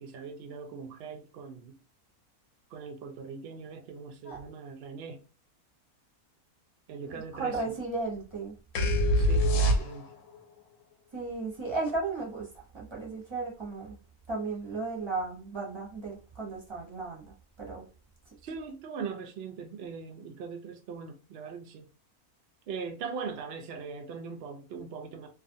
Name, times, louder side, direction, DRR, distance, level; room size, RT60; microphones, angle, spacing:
voice 1, 0.0-1.8 2.7-5.2 6.9-7.6 9.1-10.1 18.4-21.9 22.7-25.3, right 5 dB, 80° right, 0.5 m, -40 dB
voice 2, 7.0-8.5 11.1-14.0 14.3-17.3 17.6-17.9, right 3 dB, 25° right, 0.6 m, -35 dB
sound 1, 8.8-10.3, equal, 65° left, 0.8 m, -24 dB
2.5 x 2.4 x 2.6 m
omnidirectional pair, 1.6 m